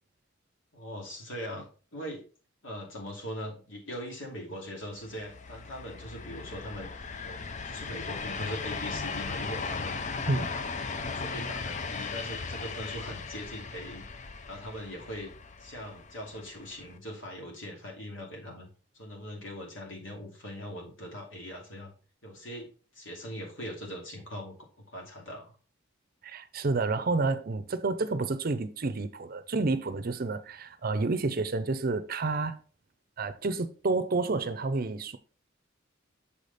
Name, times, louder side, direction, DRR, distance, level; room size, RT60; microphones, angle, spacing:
voice 1, 0.7-1.7 1.9-2.2 2.6-6.9 7.2-10.2 11.0-14.0 14.5-15.3 15.6-18.7 18.9-21.9 22.2-24.5 24.9-25.5, equal, 75° left, 2.9 m, -41 dB
sound 1, 5.0-17.0, left 4 dB, 40° left, 0.6 m, -37 dB
voice 2, 26.2-32.6 33.2-35.2, right 3 dB, 50° right, 0.6 m, -29 dB
7.0 x 5.1 x 4.1 m
head